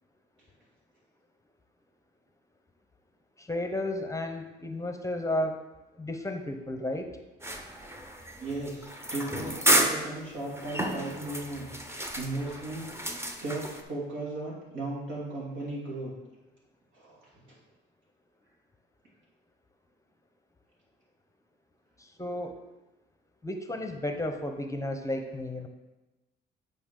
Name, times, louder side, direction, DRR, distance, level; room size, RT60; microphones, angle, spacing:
voice 1, 3.4-5.6 5.9-7.1 22.0-22.5 23.4-25.7, left 1 dB, 15° left, 5 dB, 0.7 m, -33 dB
sound 1, 7.4-13.8, right 1 dB, 10° right, 0.8 m, -31 dB
voice 2, 8.4-16.1 16.9-17.4, right 2 dB, 75° right, -5 dB, 2.9 m, -36 dB
8.5 x 5.3 x 3.8 m, 1.1 s
cardioid pair, 90°, 20 cm